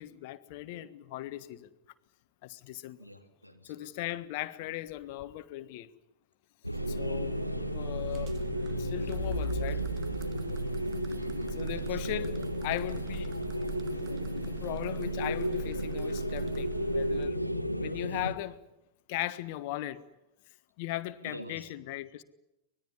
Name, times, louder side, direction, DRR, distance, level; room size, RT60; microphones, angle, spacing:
voice 1, 0.0-1.7 2.4-3.0 3.6-5.9 6.9-7.4 7.7-8.4 8.8-9.8 11.6-13.3 14.4-17.4 17.8-18.6 19.1-20.0 20.8-22.2, left 15 dB, 50° left, 1.4 m, -38 dB
voice 2, 3.0-3.7 7.5-7.7 11.2-12.2 21.2-21.7, equal, 90° right, 3.0 m, -46 dB
sound 1, 6.6-18.3, equal, 90° left, 1.3 m, -33 dB
sound 2, 6.7-17.3, right 11 dB, 40° right, 1.8 m, -43 dB
24.5 x 20.5 x 9.8 m
figure-of-eight pair, 90°, 0 cm